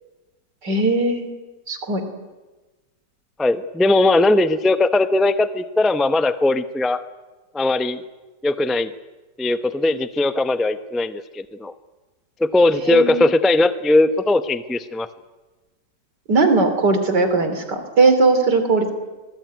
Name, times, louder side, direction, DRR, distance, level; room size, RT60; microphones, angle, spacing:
voice 1, 0.6-1.3 1.7-2.0 12.9-13.3 16.3-18.9, right 3 dB, 65° right, 8 dB, 3.7 m, -18 dB
voice 2, 3.4-7.0 7.5-8.0 8.4-8.9 9.4-11.7 12.4-15.1, left 2 dB, ahead, 11 dB, 0.3 m, -19 dB
25.5 x 20.5 x 9.4 m, 1.2 s
omnidirectional pair, 2.0 m